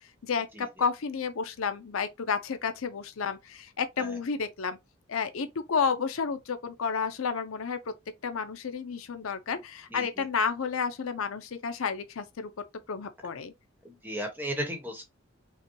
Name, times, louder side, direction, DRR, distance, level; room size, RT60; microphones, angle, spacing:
voice 1, 0.2-4.8 5.1-7.9 8.2-12.5 12.9-13.5, left 5 dB, 75° left, 0.5 m, -31 dB
voice 2, 9.9-10.2 13.8-15.0, equal, 10° right, 1.1 m, -35 dB
5.4 x 2.2 x 2.9 m
head